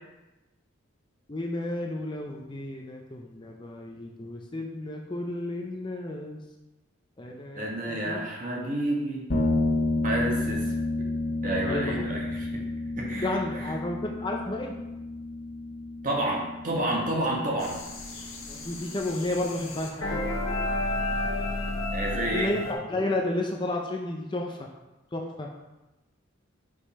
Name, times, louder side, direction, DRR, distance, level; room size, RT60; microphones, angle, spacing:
voice 1, 1.3-6.4 7.2-8.2 10.5-10.6 11.7-12.1 13.2-14.7 18.5-20.2 22.3-24.7 25.1-25.5, left 2 dB, 25° left, 1 dB, 0.5 m, -32 dB
voice 2, 7.5-9.3 10.0-10.7 11.4-12.6 13.0-13.7 16.0-17.8 21.9-22.5, right 1 dB, 40° right, -2 dB, 1.3 m, -30 dB
sound 1, 9.3-18.8, left 2 dB, 50° left, 1.5 m, -31 dB
sound 2, 17.6-22.7, left 2 dB, 80° left, 1.3 m, -32 dB
5.3 x 5.1 x 4.2 m, 1.0 s
head